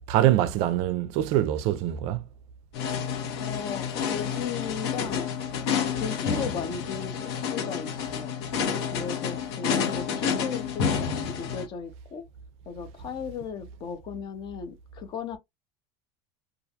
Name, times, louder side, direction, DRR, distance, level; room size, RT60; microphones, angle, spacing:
voice 1, 0.1-2.2, right 13 dB, 55° right, 0.4 m, -24 dB
sound 1, 2.7-11.7, left 7 dB, 75° left, 0.9 m, -29 dB
voice 2, 3.4-5.3 5.7-8.3 8.9-12.2 12.7-15.4, left 6 dB, 35° left, 0.5 m, -36 dB
2.4 x 2.2 x 2.7 m
supercardioid pair, 145°, 13 cm